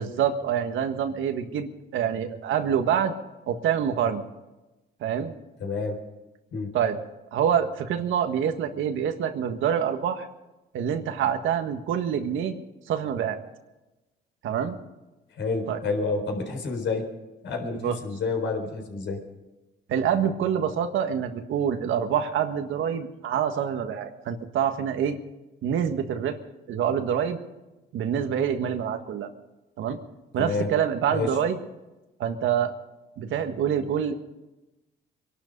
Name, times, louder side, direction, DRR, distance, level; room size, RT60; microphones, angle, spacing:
voice 1, 0.0-3.1 3.5-4.2 5.0-5.3 6.7-7.0 7.3-10.3 10.7-12.5 12.9-13.4 14.4-14.8 15.7-15.8 17.8-17.9 19.9-25.2 25.6-26.4 26.7-27.4 27.9-29.3 29.8-30.0 30.3-31.6 32.2-32.7 33.2-34.1, right 8 dB, 80° right, 7 dB, 1.6 m, -26 dB
voice 2, 5.6-6.0 6.5-6.7 15.4-17.1 17.4-19.2 30.4-30.7 31.1-31.4, left 4 dB, 70° left, 3 dB, 4.2 m, -29 dB
23.0 x 12.0 x 5.4 m, 1.0 s
cardioid pair, 90°, 20 cm